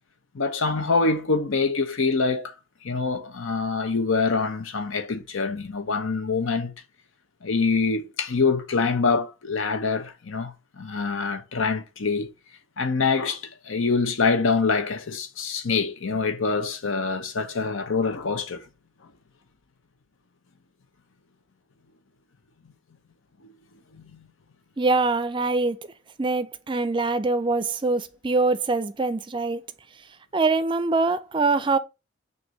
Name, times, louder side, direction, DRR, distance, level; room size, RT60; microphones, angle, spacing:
voice 1, 0.3-2.5 2.8-6.7 7.4-12.3 12.8-18.6 23.9-24.3, left 4 dB, 85° left, 0.8 m, -25 dB
voice 2, 24.8-25.9 26.2-29.6 30.3-31.8, right 3 dB, 25° right, 0.4 m, -23 dB
6.4 x 2.6 x 3.0 m
head